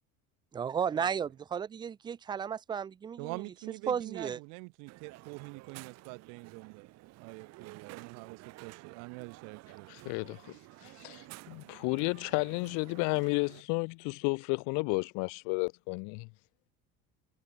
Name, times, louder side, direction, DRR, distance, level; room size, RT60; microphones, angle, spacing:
voice 1, 0.5-3.4 3.9-4.4, right 7 dB, 15° right, 0.3 m, -34 dB
voice 2, 3.2-6.9 7.2-9.9, right 37 dB, 90° right, 3.3 m, -45 dB
Crowd, 4.9-13.6, right 19 dB, 65° right, 4.2 m, -52 dB
voice 3, 9.9-10.6 10.8-16.3, left 33 dB, 80° left, 1.0 m, -32 dB
cardioid pair, 155°, 29 cm